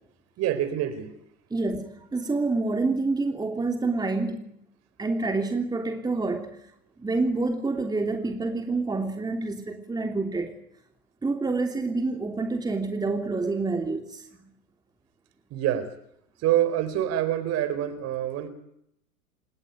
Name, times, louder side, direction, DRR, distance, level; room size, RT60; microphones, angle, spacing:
voice 1, 0.4-1.1 15.5-15.9 16.4-18.5, right 11 dB, 35° right, 13 dB, 4.4 m, -26 dB
voice 2, 1.5-4.5 5.0-6.6 7.0-10.5 11.2-14.3, right 3 dB, 10° right, 5 dB, 3.2 m, -27 dB
27.0 x 19.5 x 9.4 m, 0.73 s
figure-of-eight pair, 105°, 44 cm